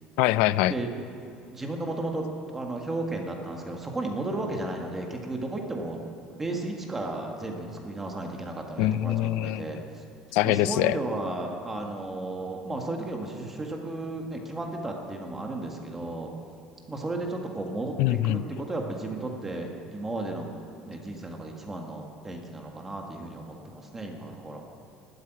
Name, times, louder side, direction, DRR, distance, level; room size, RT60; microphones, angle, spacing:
voice 1, 0.2-0.7 8.8-9.7 10.3-11.0 18.0-18.4, left 15 dB, 75° left, 16 dB, 0.5 m, -23 dB
voice 2, 1.5-2.3 2.5-6.0 6.4-9.8 10.4-16.3 16.9-20.5 20.8-24.6, right 2 dB, 15° right, 2 dB, 1.6 m, -34 dB
13.0 x 11.5 x 9.2 m, 2.6 s
cardioid pair, 160°, 2 cm